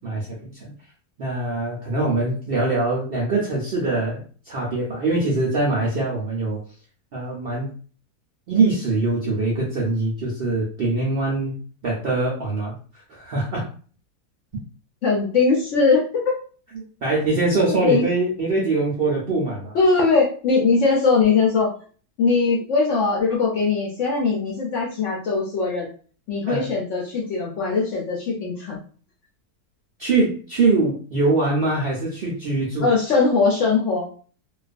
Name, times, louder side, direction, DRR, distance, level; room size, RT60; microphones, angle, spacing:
voice 1, 0.0-0.7 1.2-6.6 7.1-7.7 8.5-13.7 16.7-19.8 26.5-26.7 30.0-32.9, right 3 dB, 65° right, -4 dB, 0.6 m, -23 dB
voice 2, 15.0-16.4 17.7-18.0 19.7-21.7 22.2-25.9 26.3-28.8 32.8-34.1, left 4 dB, 65° left, -2 dB, 0.8 m, -20 dB
2.4 x 2.3 x 2.4 m, 0.42 s
omnidirectional pair, 1.7 m